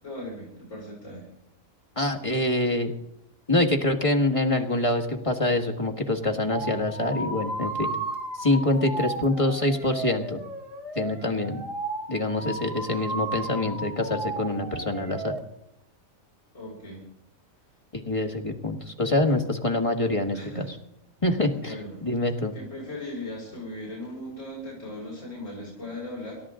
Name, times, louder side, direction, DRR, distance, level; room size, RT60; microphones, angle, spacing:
voice 1, 0.0-1.3 16.5-17.0 20.3-20.7 21.6-22.0 22.5-26.4, left 1 dB, 65° left, -4 dB, 5.1 m, -38 dB
voice 2, 1.9-2.9 3.5-7.9 8.3-10.4 10.9-11.6 12.1-15.3 17.9-20.6 21.2-22.5, left 1 dB, 25° left, 2 dB, 1.6 m, -25 dB
sound 1, 6.5-15.4, right 2 dB, 45° right, 1.8 m, -34 dB
27.5 x 13.0 x 3.7 m, 0.80 s
omnidirectional pair, 1.4 m